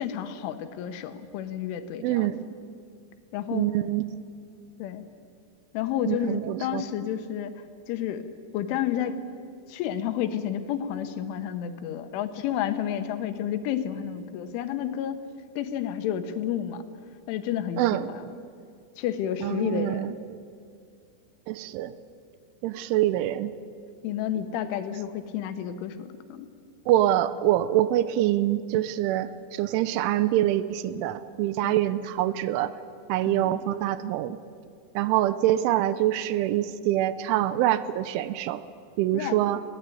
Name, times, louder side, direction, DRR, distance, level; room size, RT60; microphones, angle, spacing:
voice 1, 0.0-2.3 3.3-3.7 4.8-5.1 5.7-7.5 7.9-9.2 9.7-15.2 15.6-16.8 17.3-18.4 19.0-20.1 24.0-26.5 31.6-31.8 33.3-33.6 39.1-39.4, left 10 dB, 80° left, 10 dB, 3.4 m, -31 dB
voice 2, 2.0-2.4 3.5-4.2 6.1-6.8 17.8-18.1 19.4-20.4 21.5-21.9 22.6-23.5 26.9-32.7 33.1-34.4 35.0-38.6 39.0-39.6, right 13 dB, 80° right, 15 dB, 3.1 m, -25 dB
21.0 x 16.0 x 9.2 m, 2.3 s
omnidirectional pair, 5.6 m